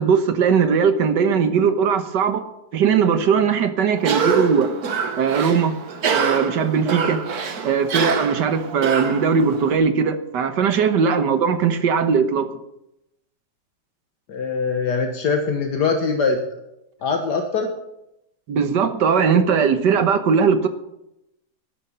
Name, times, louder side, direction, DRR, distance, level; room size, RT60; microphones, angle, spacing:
voice 1, 0.0-2.4 2.7-4.7 5.2-5.8 6.1-7.2 7.6-12.5 18.5-20.7, right 6 dB, 80° right, 10 dB, 1.8 m, -19 dB
Cough, 4.0-9.8, right 6 dB, 65° right, 1.7 m, -25 dB
voice 2, 14.3-16.4 17.0-17.7, left 4 dB, 70° left, 3 dB, 1.8 m, -22 dB
12.5 x 10.5 x 5.6 m, 0.85 s
omnidirectional pair, 1.8 m